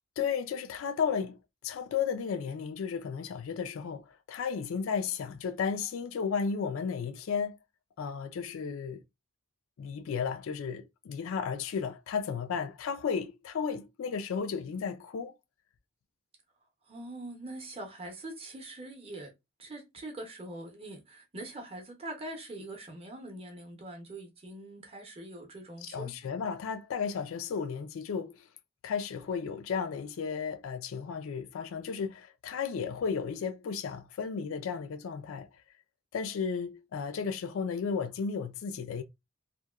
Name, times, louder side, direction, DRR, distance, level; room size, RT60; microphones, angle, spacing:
voice 1, 0.2-1.4 1.6-7.6 8.0-9.0 9.8-15.3 25.8-28.5 28.8-35.5 36.1-39.0, left 6 dB, 65° left, 0.3 m, -34 dB
voice 2, 16.9-19.3 19.6-26.1, right 1 dB, 25° right, 0.6 m, -43 dB
2.8 x 2.1 x 2.3 m
head